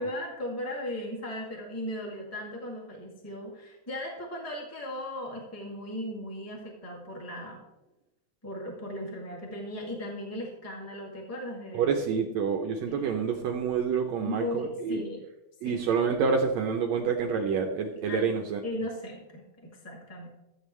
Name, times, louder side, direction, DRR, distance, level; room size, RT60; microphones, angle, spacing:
voice 1, 0.0-7.6 8.4-12.0 12.9-13.1 14.2-15.2 15.6-15.8 18.1-18.3 18.6-20.3, left 1 dB, 5° left, -2 dB, 1.6 m, -37 dB
voice 2, 11.7-15.0 15.6-18.6, right 6 dB, 75° right, 3 dB, 1.6 m, -28 dB
14.0 x 8.2 x 3.3 m, 0.94 s
omnidirectional pair, 3.9 m